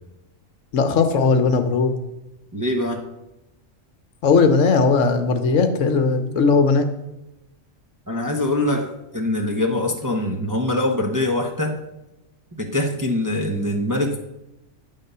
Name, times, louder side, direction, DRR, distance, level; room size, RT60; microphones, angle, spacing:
voice 1, 0.7-1.9 4.2-6.9, left 4 dB, 70° left, 8 dB, 1.2 m, -18 dB
voice 2, 2.5-3.1 8.1-11.7 12.6-14.2, left 1 dB, 20° right, 3 dB, 0.7 m, -23 dB
10.5 x 3.7 x 6.7 m, 0.94 s
omnidirectional pair, 1.4 m